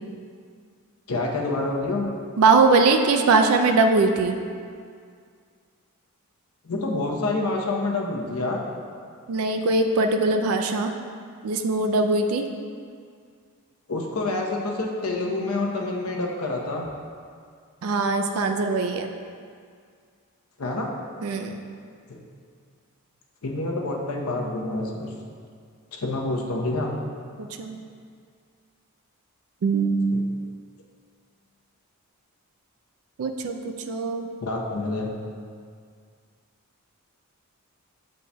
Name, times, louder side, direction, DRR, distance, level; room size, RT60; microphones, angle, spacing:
voice 1, 1.1-2.1 6.6-8.6 13.9-16.9 20.6-20.9 22.1-22.2 23.4-25.1 25.9-26.9 30.1-30.2 34.4-35.1, left 2 dB, 80° left, 0 dB, 0.7 m, -27 dB
voice 2, 2.4-4.4 9.3-10.9 11.4-12.5 17.8-19.1 21.2-21.6 27.4-27.8 29.6-30.2 33.2-33.6 33.9-34.3, right 3 dB, 75° right, 5 dB, 0.4 m, -21 dB
8.0 x 5.3 x 2.2 m, 2.1 s
head